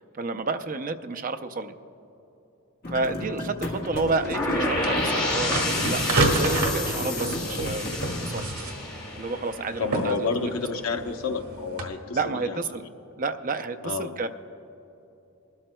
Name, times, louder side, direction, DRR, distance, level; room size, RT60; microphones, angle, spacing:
voice 1, 0.1-1.8 2.9-8.5 9.2-10.5 12.1-12.8 13.2-14.3, right 3 dB, 40° right, 8 dB, 0.5 m, -30 dB
sound 1, 2.8-8.3, left 1 dB, 45° left, 1.6 m, -33 dB
sound 2, 3.9-11.8, right 2 dB, 85° right, 1.7 m, -30 dB
sound 3, 4.3-10.2, left 2 dB, 20° left, 2.2 m, -30 dB
voice 2, 9.8-12.6 13.8-14.1, left 4 dB, 80° left, 4 dB, 0.8 m, -30 dB
22.0 x 13.0 x 2.2 m, 3.0 s
head